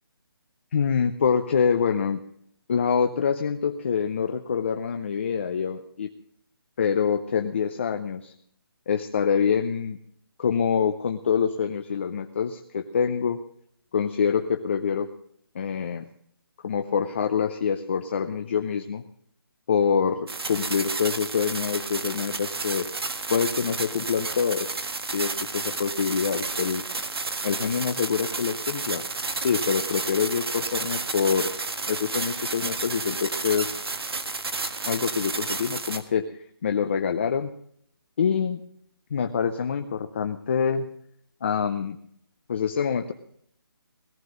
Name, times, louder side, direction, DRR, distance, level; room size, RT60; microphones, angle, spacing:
voice 1, 0.7-2.2 2.7-6.1 6.8-8.3 8.9-10.0 10.4-13.4 13.9-15.1 15.5-16.1 16.6-19.0 19.7-22.9 23.3-24.7 25.1-26.8 27.4-29.0 29.4-31.5 31.9-33.8 34.8-37.5 38.2-38.6 39.1-40.9 41.4-42.0 42.5-43.1, left 6 dB, 30° left, 7 dB, 0.6 m, -25 dB
sound 1, 20.3-36.0, right 3 dB, 80° right, 1.6 m, -31 dB
17.5 x 13.0 x 3.8 m, 0.68 s
hypercardioid pair, 170°, 13 cm